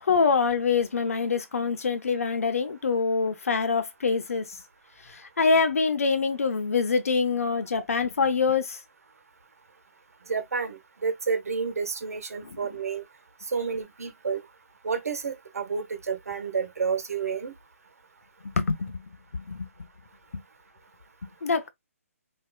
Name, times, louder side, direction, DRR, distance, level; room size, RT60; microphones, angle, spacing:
voice 1, 0.0-4.6 5.1-8.8 12.4-12.6 18.4-19.7 20.3-20.4 21.4-21.7, left 5 dB, 75° left, 0.9 m, -25 dB
voice 2, 10.3-13.0 13.5-14.4 14.8-17.5, right 5 dB, 80° right, 1.3 m, -30 dB
4.5 x 2.8 x 2.3 m
hypercardioid pair, 165°, 8 cm